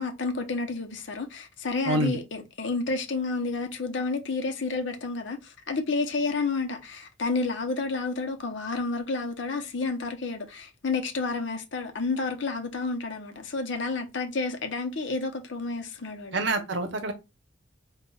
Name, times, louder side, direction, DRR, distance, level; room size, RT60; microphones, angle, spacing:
voice 1, 0.0-16.4, left 3 dB, 65° left, 0.7 m, -30 dB
voice 2, 1.8-2.2 16.3-17.1, right 2 dB, 65° right, 0.7 m, -26 dB
5.3 x 2.3 x 2.3 m
head